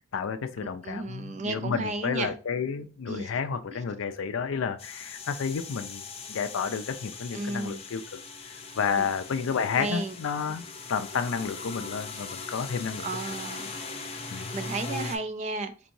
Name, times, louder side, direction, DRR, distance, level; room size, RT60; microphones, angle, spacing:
voice 1, 0.1-8.0 8.4-13.1 14.3-14.5, left 6 dB, 85° left, 0.4 m, -31 dB
voice 2, 0.8-2.3 3.1-3.3 3.7-3.8 7.3-7.8 9.0-9.1 9.7-10.1 13.0-13.8 14.5-15.7, right 3 dB, 35° right, 0.4 m, -33 dB
sound 1, 4.8-15.2, left 4 dB, 30° left, 0.5 m, -40 dB
4.5 x 2.9 x 2.6 m
head